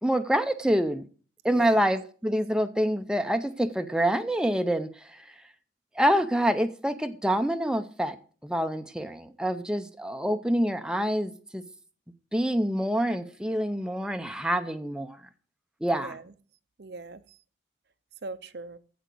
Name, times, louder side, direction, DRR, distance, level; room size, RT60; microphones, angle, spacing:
voice 1, 0.0-1.0 1.4-5.2 6.0-8.2 8.4-11.6 12.3-15.2 15.8-16.2, equal, 5° right, 0.6 m, -26 dB
voice 2, 1.5-1.9 15.9-16.3 16.8-17.4 18.2-18.8, right 3 dB, 60° right, 0.7 m, -40 dB
15.0 x 5.0 x 7.7 m
head